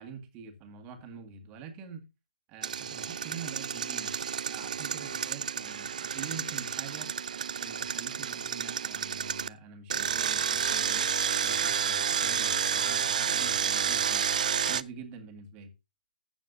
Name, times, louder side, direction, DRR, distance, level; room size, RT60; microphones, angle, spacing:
voice 1, 0.0-2.0 2.5-4.2 4.5-7.1 7.6-15.7, right 6 dB, 20° right, 1.8 m, -45 dB
Engine, 2.6-9.5 9.9-14.8, right 7 dB, 50° right, 0.5 m, -30 dB
15.0 x 7.1 x 2.6 m
figure-of-eight pair, 150°, 5 cm